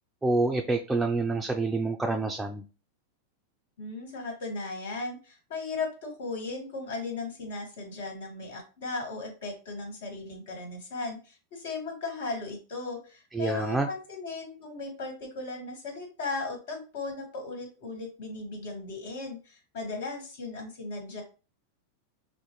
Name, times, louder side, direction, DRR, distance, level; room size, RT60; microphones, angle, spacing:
voice 1, 0.2-2.6 13.3-13.9, right 2 dB, 5° right, 3 dB, 0.4 m, -27 dB
voice 2, 3.8-21.2, left 3 dB, 70° left, 3 dB, 1.8 m, -37 dB
6.2 x 2.1 x 3.0 m, 0.34 s
supercardioid pair, 135°, 0 cm